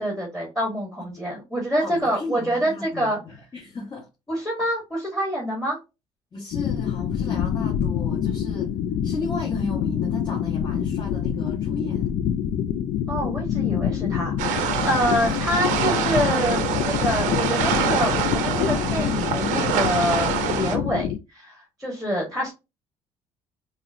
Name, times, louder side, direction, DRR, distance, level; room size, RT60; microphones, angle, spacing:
voice 1, 0.0-3.2 4.3-5.8 13.1-22.5, equal, 5° left, 1.2 m, -26 dB
voice 2, 1.8-4.1 6.3-8.7 9.0-12.1 15.2-15.4, left 3 dB, 30° left, 1.1 m, -35 dB
sound 1, 6.5-21.2, left 9 dB, 60° left, 0.4 m, -26 dB
sound 2, 14.4-20.8, right 8 dB, 75° right, 0.6 m, -26 dB
3.6 x 2.0 x 2.5 m
supercardioid pair, 75°, 13 cm